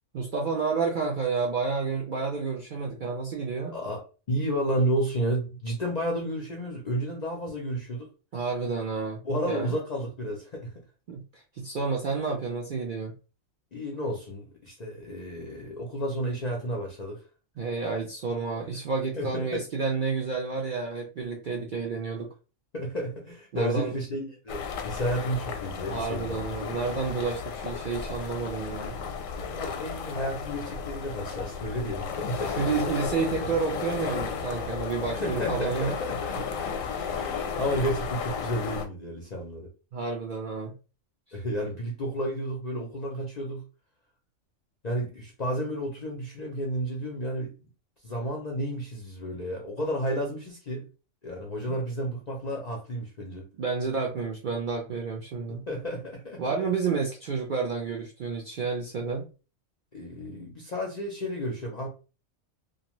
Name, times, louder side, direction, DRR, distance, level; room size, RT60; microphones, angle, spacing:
voice 1, 0.1-3.8 8.3-9.7 11.1-13.1 17.6-22.3 23.5-24.0 25.9-29.0 32.6-35.9 39.9-40.7 53.6-55.6 56.4-59.3, right 5 dB, 60° right, 0.5 m, -30 dB
voice 2, 3.7-8.1 9.2-10.8 13.7-17.2 19.1-19.6 22.7-26.5 29.4-32.7 35.1-39.7 41.3-43.6 44.8-47.7 48.0-50.9 51.2-53.5 55.5-56.4 59.9-61.9, equal, 55° left, 0.5 m, -32 dB
sound 1, 24.5-38.9, left 6 dB, 85° left, 1.0 m, -34 dB
2.5 x 2.2 x 2.9 m
omnidirectional pair, 1.4 m